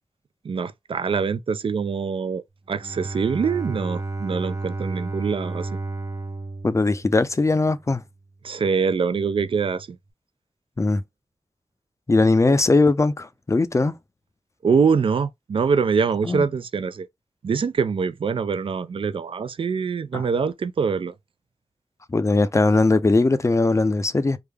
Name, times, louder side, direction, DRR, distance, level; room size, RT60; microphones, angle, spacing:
voice 1, 0.4-5.8 8.4-10.0 12.5-12.6 14.6-17.1 17.4-21.1, right 5 dB, 70° right, 0.4 m, -24 dB
Bowed string instrument, 2.7-7.7, right 2 dB, 35° right, 0.7 m, -32 dB
voice 2, 6.6-8.0 10.8-11.0 12.1-13.9 16.3-16.5 20.1-20.2 22.1-24.4, left 3 dB, 30° left, 0.4 m, -20 dB
3.5 x 2.1 x 3.2 m
cardioid pair, 50°, 10 cm